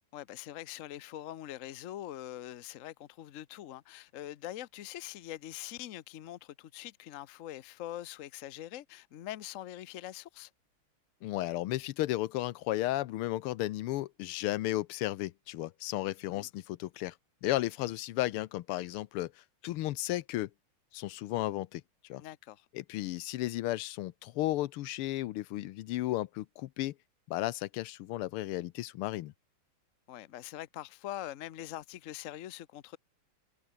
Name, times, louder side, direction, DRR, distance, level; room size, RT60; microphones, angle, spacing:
voice 1, 0.1-10.5 16.3-16.5 22.2-22.7 30.1-33.0, left 13 dB, 65° left, 0.7 m, -43 dB
voice 2, 11.2-17.1 17.4-19.3 19.6-20.5 20.9-21.8 22.1-22.2 22.7-26.9 27.3-29.3, left 16 dB, 90° left, 1.6 m, -34 dB
omnidirectional pair, 2.4 m